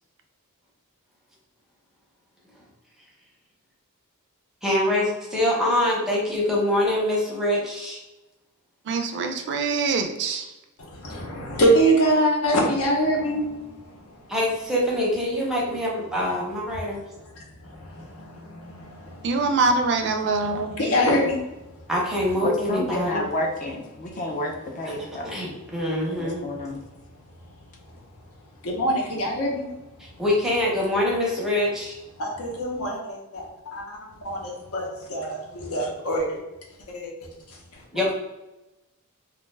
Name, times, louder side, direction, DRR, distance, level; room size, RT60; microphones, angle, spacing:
voice 1, 4.6-8.0 14.3-17.0 21.9-23.2 25.2-26.4 30.0-32.0 37.9-38.1, left 1 dB, ahead, -4 dB, 0.6 m, -24 dB
voice 2, 8.9-10.5 19.2-20.8, right 3 dB, 55° right, 6 dB, 0.3 m, -24 dB
voice 3, 10.8-14.3 17.4-19.4 20.8-21.5 24.0-24.2 28.6-29.7 32.2-36.4 36.9-37.1 37.5-37.8, right 1 dB, 75° left, -1 dB, 0.7 m, -25 dB
voice 4, 22.4-25.3 26.0-26.8, left 1 dB, 35° left, 1 dB, 0.4 m, -30 dB
2.4 x 2.2 x 3.2 m, 1.0 s
head